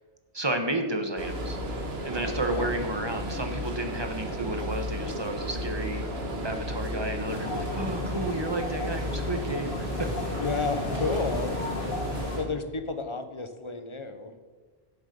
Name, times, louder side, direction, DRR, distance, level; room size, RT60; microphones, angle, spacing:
voice 1, 0.3-1.6 2.0-6.1 6.4-10.1, right 2 dB, 25° right, 5 dB, 1.3 m, -32 dB
sound 1, 1.2-12.5, equal, 80° right, 1.9 m, -33 dB
voice 2, 2.2-2.7 10.4-11.6 12.4-14.4, left 3 dB, 30° left, 8 dB, 1.0 m, -32 dB
sound 2, 7.3-12.4, left 2 dB, 60° left, 1.6 m, -35 dB
17.0 x 7.3 x 5.3 m, 1.5 s
omnidirectional pair, 1.0 m